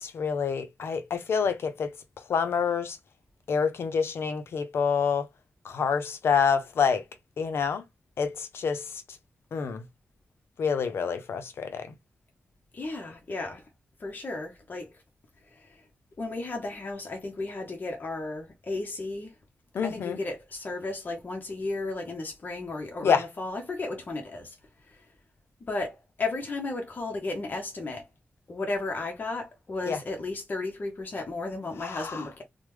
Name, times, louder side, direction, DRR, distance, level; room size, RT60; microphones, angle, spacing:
voice 1, 0.0-1.9 2.3-3.0 3.5-5.3 5.6-7.0 7.4-7.8 8.2-9.0 9.5-9.8 10.6-11.9 19.7-20.2 23.0-23.2 29.8-30.0 31.8-32.3, left 6 dB, 85° left, 0.5 m, -27 dB
voice 2, 12.7-13.7 14.0-14.9 15.5-15.8 16.2-19.3 19.8-24.5 24.9-25.0 25.6-28.1 28.5-32.4, left 2 dB, 50° left, 0.7 m, -34 dB
3.1 x 2.1 x 3.1 m
cardioid pair, 75°, 4 cm